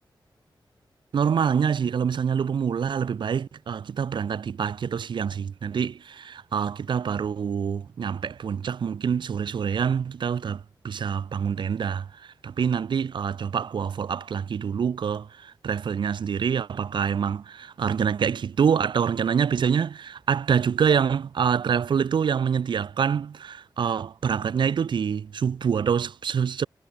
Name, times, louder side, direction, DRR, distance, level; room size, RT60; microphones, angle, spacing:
voice 1, 1.1-26.7, right 7 dB, 65° right, 0.6 m, -26 dB
wide cardioid pair, 140°, 8 cm